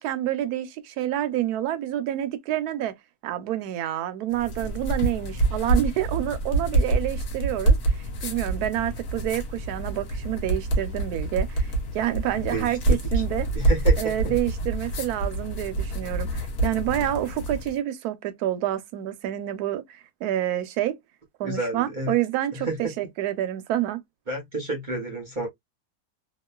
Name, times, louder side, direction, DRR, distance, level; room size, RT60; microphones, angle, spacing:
voice 1, 0.0-2.9 3.2-8.0 8.2-13.5 14.0-21.0 21.4-24.0, right 13 dB, 75° right, 1.0 m, -28 dB
sound 1, 4.3-17.8, right 2 dB, 65° left, 1.3 m, -26 dB
voice 2, 13.5-14.3 21.4-22.1 22.5-22.8 24.3-25.5, right 2 dB, 40° right, 0.8 m, -30 dB
2.9 x 2.3 x 2.2 m
omnidirectional pair, 1.8 m